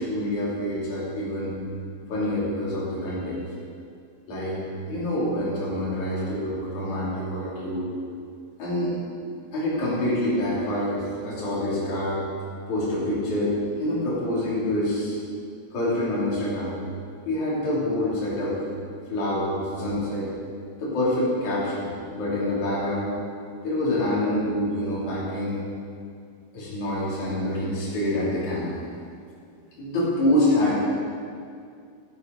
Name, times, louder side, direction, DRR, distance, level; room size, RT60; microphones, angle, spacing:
voice 1, 0.0-1.5 2.1-3.4 4.3-7.9 8.6-9.0 9.5-12.2 12.7-15.2 15.7-16.8 17.3-18.6 19.1-20.3 20.8-23.1 23.6-25.6 26.5-28.8 29.8-30.8, left 1 dB, 45° left, -8 dB, 4.2 m, -26 dB
11.0 x 10.0 x 5.3 m, 2.3 s
omnidirectional pair, 5.1 m